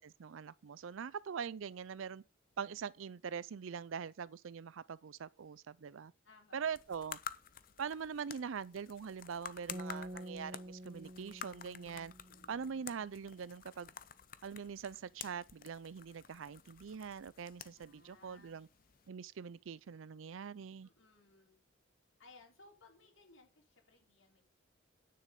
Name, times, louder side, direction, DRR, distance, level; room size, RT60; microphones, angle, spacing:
voice 1, 0.0-2.2 2.6-6.1 6.5-7.2 7.8-12.1 12.5-13.9 14.4-18.7 19.1-20.9, right 6 dB, 80° right, 0.4 m, -43 dB
voice 2, 6.2-6.7 12.2-12.7 17.8-18.6 20.8-21.6 22.2-24.4, left 3 dB, 75° left, 3.9 m, -63 dB
sound 1, 6.6-19.1, left 8 dB, 45° left, 0.6 m, -51 dB
sound 2, 9.7-12.9, right 1 dB, 35° right, 1.4 m, -48 dB
9.8 x 6.6 x 5.1 m
head